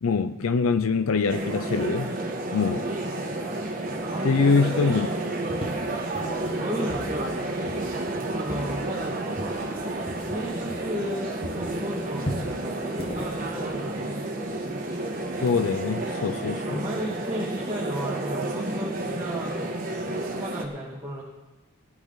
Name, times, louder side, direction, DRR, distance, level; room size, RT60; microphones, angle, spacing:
voice 1, 0.0-2.1 2.5-2.9 4.2-5.1 15.4-16.8, left 4 dB, 80° left, 0.5 m, -24 dB
sound 1, 1.3-20.6, right 2 dB, 40° right, 1.6 m, -31 dB
voice 2, 4.0-5.0 6.5-7.4 8.2-9.2 10.2-14.3 16.7-19.6 20.0-21.2, equal, 20° right, 1.8 m, -34 dB
sound 2, 5.5-11.2 11.4-14.3, equal, 25° left, 1.2 m, -39 dB
17.5 x 10.5 x 4.0 m
head